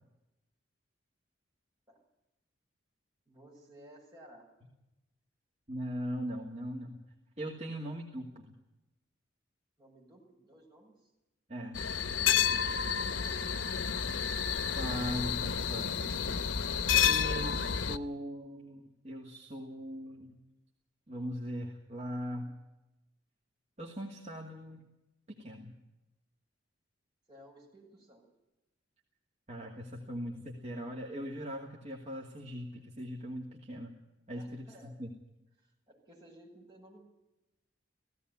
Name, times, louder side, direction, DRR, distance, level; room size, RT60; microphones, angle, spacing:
voice 1, 3.3-4.5 9.8-11.1 12.8-13.5 27.3-28.2 34.3-34.9 35.6-37.0, right 1 dB, 20° right, -2 dB, 7.6 m, -56 dB
voice 2, 5.7-7.0 7.4-8.5 11.5-11.8 14.8-16.2 17.0-20.3 21.1-22.6 23.8-24.9 25.3-25.7 29.5-34.0 34.3-35.1, equal, 40° right, 0 dB, 2.5 m, -40 dB
sound 1, 11.7-18.0, left 8 dB, 85° left, 0.8 m, -30 dB
17.0 x 17.0 x 9.7 m, 0.95 s
head